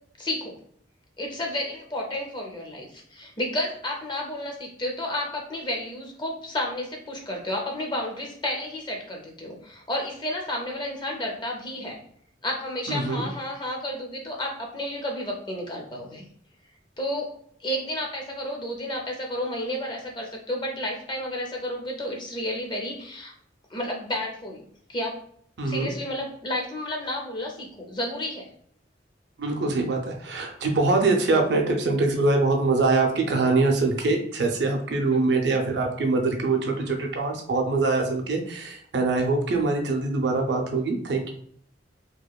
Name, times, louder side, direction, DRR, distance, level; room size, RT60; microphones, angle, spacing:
voice 1, 0.2-0.6 1.2-12.0 12.4-16.2 17.0-17.3 17.6-23.3 23.7-25.2 25.6-28.5, left 1 dB, 25° left, 1 dB, 0.5 m, -31 dB
voice 2, 12.9-13.2 25.6-25.9 29.4-41.3, right 3 dB, 65° right, 2 dB, 0.5 m, -23 dB
2.8 x 2.2 x 2.2 m, 0.63 s
head